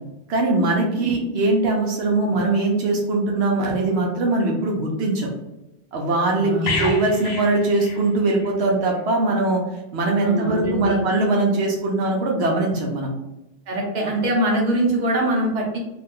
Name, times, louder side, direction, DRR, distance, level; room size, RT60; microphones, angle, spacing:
voice 1, 0.3-5.3 5.9-9.6 9.9-13.1, right 2 dB, 75° right, 0 dB, 0.8 m, -21 dB
voice 2, 6.3-6.9 10.0-11.0 13.7-15.8, right 1 dB, 45° right, -2 dB, 0.8 m, -23 dB
sound 1, 6.7-8.6 8.9-9.1, left 3 dB, 75° left, 0.9 m, -29 dB
2.5 x 2.3 x 3.5 m, 0.97 s
omnidirectional pair, 1.1 m